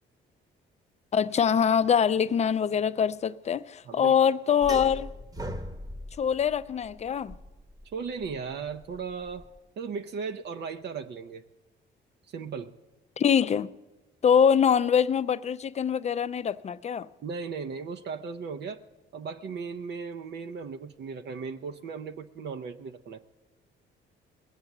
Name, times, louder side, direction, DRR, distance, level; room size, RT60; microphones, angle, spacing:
voice 1, 1.1-5.1 6.2-7.4 13.2-13.7 14.2-17.1, left 7 dB, 35° left, 0.5 m, -24 dB
voice 2, 3.9-4.2 7.9-9.5 9.8-11.4 12.3-12.7 17.2-18.8 19.1-23.2, right 5 dB, 60° right, 0.6 m, -36 dB
sound 1, 4.6-9.6, equal, 20° right, 1.0 m, -39 dB
19.5 x 7.8 x 7.2 m
cardioid pair, 90°, 20 cm